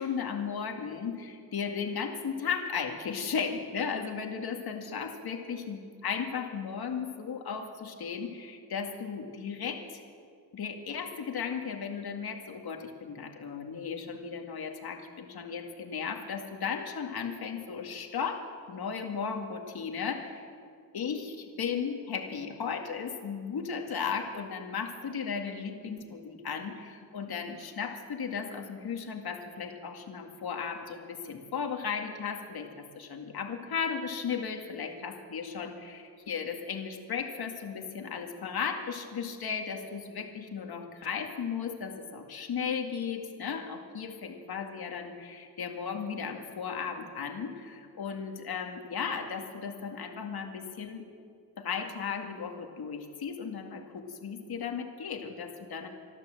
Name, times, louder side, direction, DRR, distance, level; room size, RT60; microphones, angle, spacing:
voice 1, 0.0-10.0 10.5-20.5 20.9-51.1 51.6-55.9, left 6 dB, 80° left, 3 dB, 2.1 m, -35 dB
26.0 x 13.0 x 7.7 m, 2.2 s
wide cardioid pair, 130°, 37 cm